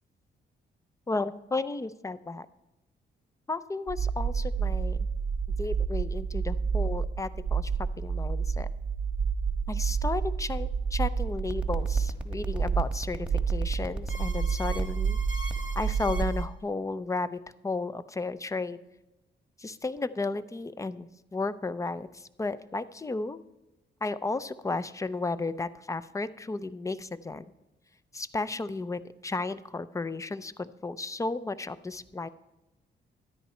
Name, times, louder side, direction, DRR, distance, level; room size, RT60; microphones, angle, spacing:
voice 1, 1.1-2.5 3.5-5.1 5.6-8.7 9.7-15.2 15.8-18.8 19.6-23.4 24.0-27.4 28.1-32.3, left 3 dB, 15° left, 15 dB, 0.5 m, -33 dB
sound 1, 3.9-16.5, right 6 dB, 55° right, 0.7 m, -29 dB
sound 2, 11.4-16.4, right 1 dB, 5° right, 1.4 m, -39 dB
13.0 x 10.0 x 4.4 m, 0.96 s
cardioid pair, 75°, 19 cm